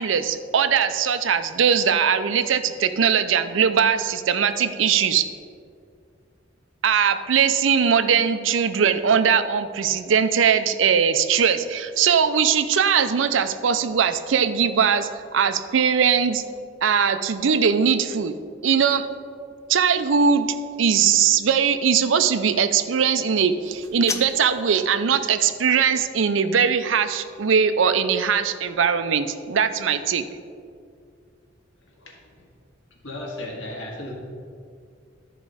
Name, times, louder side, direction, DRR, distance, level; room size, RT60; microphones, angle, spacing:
voice 1, 0.0-5.3 6.8-16.4 16.8-18.3 18.6-19.0 19.7-30.2, right 7 dB, 80° right, 11 dB, 0.5 m, -20 dB
sound 1, 23.6-24.7, left 4 dB, 15° left, 0.4 m, -33 dB
voice 2, 31.9-32.5 33.0-34.1, left 1 dB, 80° left, -1 dB, 1.9 m, -35 dB
12.5 x 5.0 x 4.9 m, 2.3 s
head